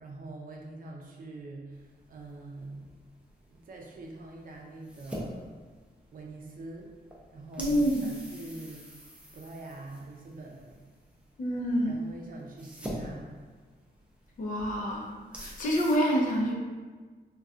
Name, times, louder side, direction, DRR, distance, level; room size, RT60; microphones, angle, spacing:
voice 1, 0.0-2.9 3.5-5.5 6.1-6.9 7.3-8.9 9.3-10.8 11.8-13.3, right 2 dB, 55° right, 0 dB, 0.5 m, -44 dB
sound 1, 1.7-16.0, equal, 5° right, 0.5 m, -46 dB
voice 2, 7.6-8.1 11.4-12.0 14.4-16.6, equal, 50° left, -2 dB, 0.6 m, -27 dB
3.8 x 2.3 x 2.4 m, 1.4 s
wide cardioid pair, 145°, 17 cm